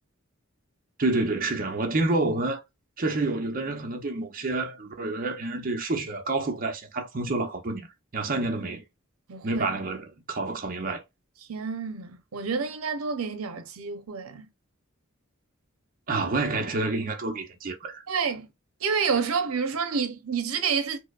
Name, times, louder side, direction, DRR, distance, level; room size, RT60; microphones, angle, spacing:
voice 1, 1.0-2.6 3.0-7.9 8.1-8.8 9.4-11.0 16.1-18.0, right 2 dB, 40° right, 0.6 m, -28 dB
voice 2, 9.3-9.7 11.5-14.5 18.1-18.5 18.8-21.0, right 5 dB, 90° right, 0.6 m, -29 dB
4.7 x 2.0 x 2.3 m
head